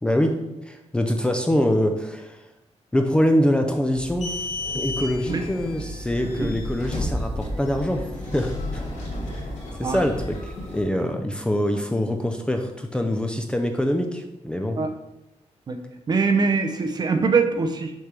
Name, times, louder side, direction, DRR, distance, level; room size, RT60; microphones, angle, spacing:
voice 1, 0.0-0.4 0.6-2.4 2.9-4.4 4.7-8.0 8.3-8.8 9.8-14.8, equal, 10° left, 4 dB, 0.5 m, -24 dB
sound 1, 3.9-10.8, left 1 dB, 90° left, 2.0 m, -32 dB
voice 2, 16.1-17.9, right 4 dB, 35° right, 6 dB, 0.6 m, -22 dB
6.5 x 3.4 x 6.1 m, 0.94 s
wide cardioid pair, 160°, 12 cm